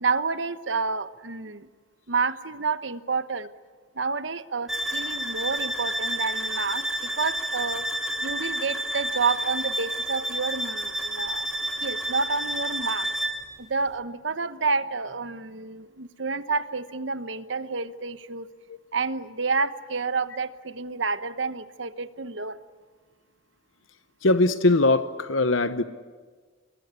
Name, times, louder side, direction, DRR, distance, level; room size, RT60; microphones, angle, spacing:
voice 1, 0.0-1.7 2.1-3.5 3.9-7.8 8.2-11.5 11.8-13.1 13.6-18.5 18.9-22.6, right 4 dB, 65° right, 12 dB, 1.1 m, -29 dB
sound 1, 4.7-13.5, right 1 dB, ahead, 3.1 m, -30 dB
voice 2, 24.2-25.8, left 2 dB, 80° left, 11 dB, 1.0 m, -21 dB
28.0 x 21.5 x 9.6 m, 1.5 s
head